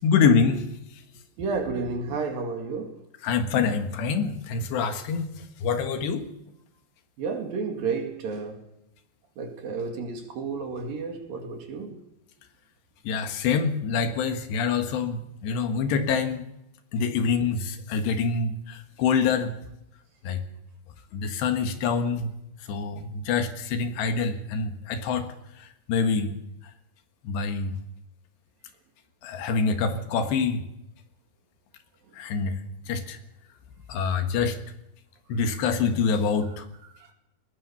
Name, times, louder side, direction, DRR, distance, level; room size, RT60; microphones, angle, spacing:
voice 1, 0.0-0.6 3.2-5.3 5.6-6.3 13.1-16.5 16.9-19.6 20.3-20.4 21.1-22.3 22.7-25.3 25.6-26.4 27.3-27.8 29.2-30.6 32.1-32.6 32.9-33.2 33.9-34.6 35.3-36.7, left 5 dB, 75° left, 3.7 m, -25 dB
voice 2, 1.4-2.9 7.2-8.6 9.4-12.0, right 4 dB, 60° right, 3.7 m, -31 dB
20.0 x 19.0 x 7.0 m
omnidirectional pair, 5.1 m